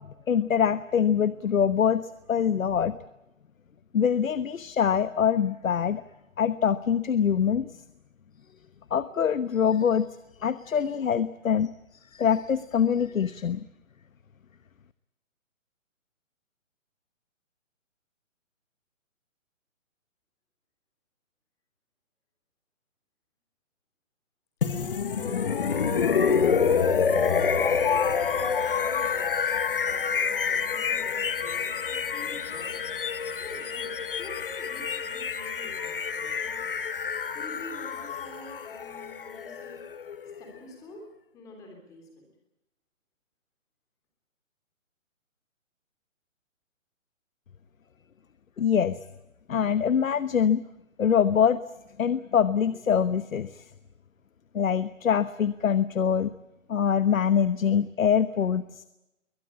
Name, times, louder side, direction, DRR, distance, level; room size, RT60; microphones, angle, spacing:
voice 1, 0.0-3.0 3.9-6.0 6.4-7.7 8.9-10.1 10.4-11.7 12.1-13.7 48.6-49.0 49.5-50.6 51.0-51.6 52.0-53.6 54.5-56.3 56.7-58.8, left 8 dB, 80° left, 14 dB, 1.2 m, -24 dB
sound 1, 24.6-40.5, left 6 dB, 40° left, 1.3 m, -27 dB
voice 2, 25.2-29.3 29.8-32.8 33.4-33.9 34.2-36.7 37.3-39.9 40.4-41.1 41.3-42.3, left 2 dB, 10° left, 3 dB, 3.4 m, -46 dB
22.5 x 19.5 x 8.5 m, 0.94 s
hypercardioid pair, 175°, 40 cm